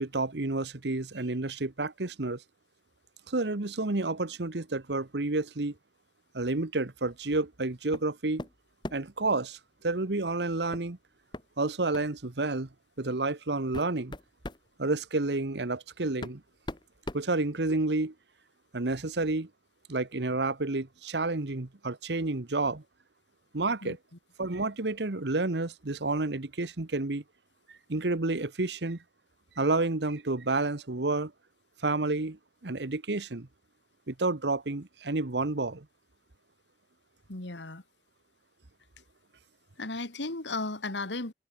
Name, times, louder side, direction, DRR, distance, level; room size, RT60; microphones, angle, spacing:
voice 1, 0.0-2.4 3.3-5.7 6.3-8.5 8.9-9.6 9.8-11.0 11.6-12.7 13.0-14.1 14.8-16.4 17.1-18.1 18.7-19.5 19.9-22.8 23.5-24.0 24.4-27.2 27.7-29.0 29.6-31.3 31.8-33.5 34.1-35.9, right 2 dB, 75° right, 1.2 m, -30 dB
sound 1, 7.9-8.1 8.4-9.2 10.7-10.9 11.3-11.5 11.9-12.1 13.0-13.1 13.5-14.7 15.7-15.8 16.2-18.0, left 1 dB, 25° left, 1.4 m, -40 dB
voice 2, 37.3-37.8 39.8-41.3, left 2 dB, 90° left, 2.4 m, -35 dB
head